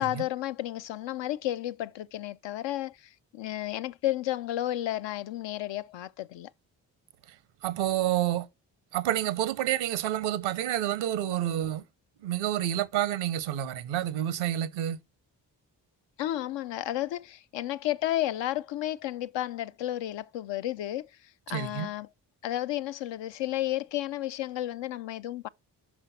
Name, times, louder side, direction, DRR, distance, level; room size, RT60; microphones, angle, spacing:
voice 1, 0.0-6.5 16.2-21.1 21.5-22.1 22.4-25.5, left 14 dB, 70° left, 0.5 m, -32 dB
voice 2, 7.6-8.5 8.9-11.8 12.2-15.0 21.5-21.9, right 12 dB, 90° right, 0.8 m, -29 dB
6.1 x 5.2 x 4.1 m
supercardioid pair, 40°, 45 cm